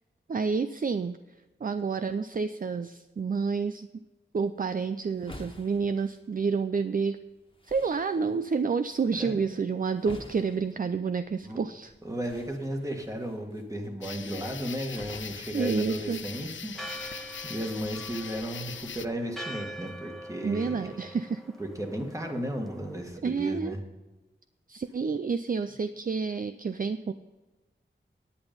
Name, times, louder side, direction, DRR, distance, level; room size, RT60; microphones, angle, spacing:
voice 1, 0.3-1.2 1.6-3.9 4.3-7.2 7.7-11.9 15.5-16.2 20.4-21.4 23.2-23.7 24.7-27.1, right 5 dB, 45° right, 11 dB, 0.4 m, -29 dB
sound 1, 4.4-16.4, left 1 dB, 25° left, 1.4 m, -51 dB
voice 2, 12.0-21.0 21.6-23.8, equal, 15° right, 3 dB, 1.7 m, -35 dB
sound 2, 14.0-19.1, left 7 dB, 75° left, 0.4 m, -41 dB
Church bell, 16.7-23.0, right 1 dB, ahead, 1.2 m, -44 dB
10.0 x 8.8 x 5.2 m, 1.2 s
wide cardioid pair, 75°, 20 cm